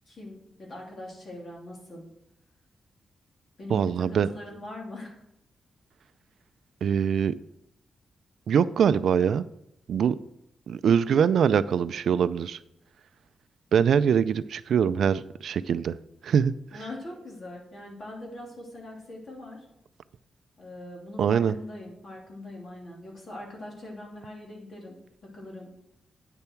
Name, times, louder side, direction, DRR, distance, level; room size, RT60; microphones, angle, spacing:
voice 1, 0.1-2.1 3.6-5.2 16.7-19.7 20.6-25.7, left 1 dB, 45° left, -2 dB, 2.9 m, -42 dB
voice 2, 3.7-4.3 6.8-7.4 8.5-9.4 9.9-10.2 10.7-12.6 13.7-16.0 16.2-16.5 21.2-21.5, right 7 dB, 75° right, 15 dB, 0.3 m, -23 dB
9.1 x 7.0 x 4.5 m, 0.80 s
wide cardioid pair, 150°, 0 cm